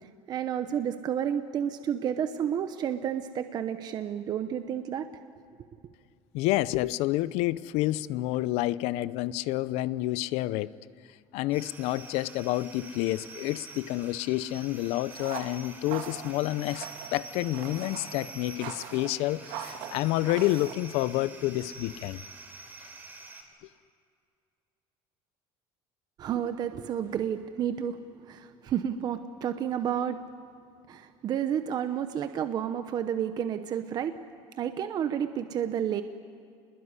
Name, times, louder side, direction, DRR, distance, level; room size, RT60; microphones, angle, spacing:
voice 1, 0.0-5.1 26.2-30.2 30.9-34.2 34.6-36.0, right 9 dB, 40° right, 9 dB, 0.9 m, -31 dB
voice 2, 6.3-10.8 11.3-22.2, left 16 dB, 70° left, 17 dB, 0.7 m, -29 dB
sound 1, 11.5-23.4, right 3 dB, 15° right, 4.2 m, -47 dB
sound 2, 15.1-20.7, right 10 dB, 85° right, 2.2 m, -42 dB
27.5 x 21.0 x 9.7 m, 2.3 s
cardioid pair, 155°, 11 cm